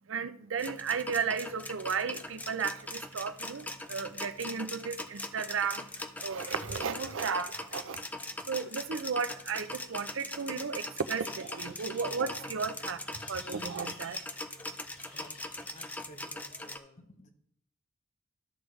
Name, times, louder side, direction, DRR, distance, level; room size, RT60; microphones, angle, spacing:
voice 1, 0.1-8.0 8.4-14.2, right 6 dB, 70° right, 0.5 m, -34 dB
sound 1, 0.6-16.8, left 2 dB, 10° left, 0.4 m, -41 dB
sound 2, 1.1-16.8, left 2 dB, 70° left, 2.8 m, -59 dB
voice 2, 15.7-17.3, equal, 35° left, 0.9 m, -54 dB
13.0 x 6.2 x 3.2 m
head